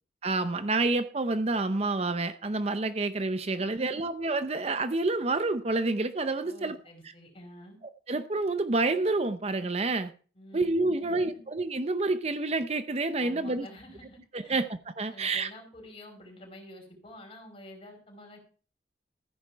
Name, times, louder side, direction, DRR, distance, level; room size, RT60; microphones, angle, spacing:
voice 1, 0.2-6.8 8.1-10.1 10.5-13.7 14.3-15.5, right 2 dB, 35° right, 10 dB, 0.7 m, -28 dB
voice 2, 3.5-4.0 6.4-7.8 10.3-11.4 13.2-14.6 15.1-18.4, left 1 dB, 30° left, 2 dB, 5.0 m, -49 dB
14.5 x 10.0 x 4.6 m, 0.39 s
head